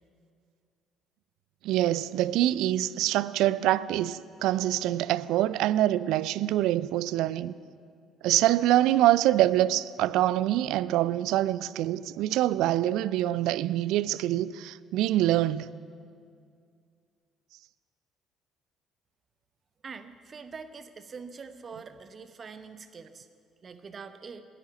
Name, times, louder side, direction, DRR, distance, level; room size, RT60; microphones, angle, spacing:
voice 1, 1.6-7.5 8.2-15.8, right 14 dB, 65° right, 0.3 m, -25 dB
voice 2, 19.8-23.3 23.6-24.4, right 5 dB, 40° right, 0.9 m, -44 dB
10.0 x 9.6 x 8.7 m
figure-of-eight pair, 50°, 0 cm